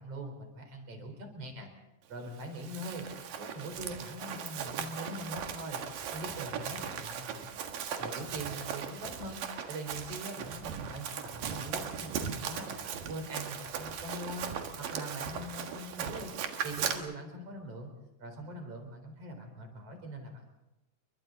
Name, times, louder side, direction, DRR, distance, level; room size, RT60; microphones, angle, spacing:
voice 1, 0.0-1.7 2.1-3.1 3.4-5.8 6.1-7.6 8.0-9.4 9.7-14.5 14.8-16.3 16.6-17.9 18.2-20.5, right 1 dB, 45° right, 4 dB, 5.1 m, -42 dB
Run, 2.4-17.0, right 7 dB, 85° right, 3.3 m, -38 dB
30.0 x 24.0 x 4.0 m, 0.94 s
omnidirectional pair, 3.8 m